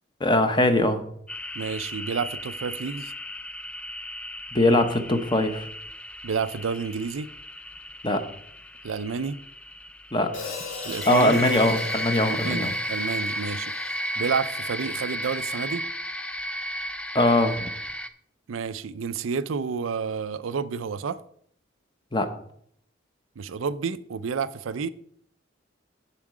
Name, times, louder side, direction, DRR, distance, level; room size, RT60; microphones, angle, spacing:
voice 1, 0.2-1.0 4.5-5.7 8.0-8.2 10.1-10.3 11.1-12.7 17.1-17.7 22.1-22.3, left 1 dB, 25° left, 0.9 m, -21 dB
sound 1, 1.3-18.1, equal, 5° left, 0.4 m, -34 dB
voice 2, 1.6-3.1 6.2-7.3 8.8-9.4 10.8-11.3 12.4-13.7 14.2-15.8 18.5-21.2 23.4-24.9, right 5 dB, 85° right, 0.4 m, -30 dB
Hi-hat, 10.3-14.6, left 4 dB, 70° left, 2.0 m, -39 dB
7.5 x 7.2 x 4.8 m
head